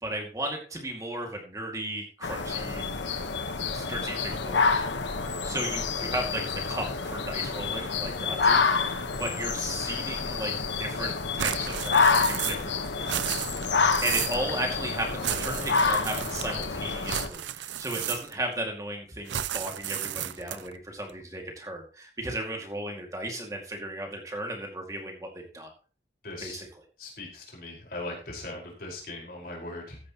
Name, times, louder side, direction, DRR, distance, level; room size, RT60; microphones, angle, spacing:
voice 1, 0.0-2.9 3.7-4.9 5.2-8.6 9.2-10.5 10.8-25.7 26.4-26.7, right 1 dB, 20° right, 1 dB, 2.2 m, -35 dB
sound 1, 2.2-17.3, left 4 dB, 90° left, 1.3 m, -28 dB
sound 2, 11.4-12.7 13.0-14.4 15.2-16.7 17.0-18.5 19.3-20.7, right 11 dB, 85° right, 0.6 m, -33 dB
voice 2, 26.2-26.6 27.0-30.0, left 2 dB, 55° left, -1 dB, 4.9 m, -39 dB
14.5 x 10.5 x 3.0 m, 0.38 s
head